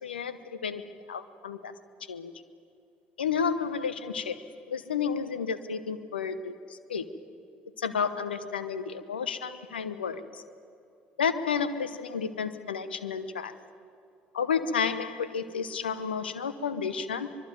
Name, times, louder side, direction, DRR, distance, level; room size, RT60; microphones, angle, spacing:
voice 1, 0.0-1.7 2.1-2.3 3.2-7.1 7.8-10.4 11.2-13.5 14.3-17.4, left 6 dB, 85° left, 14 dB, 1.1 m, -31 dB
24.5 x 21.5 x 9.3 m, 2.6 s
figure-of-eight pair, 55°, 5 cm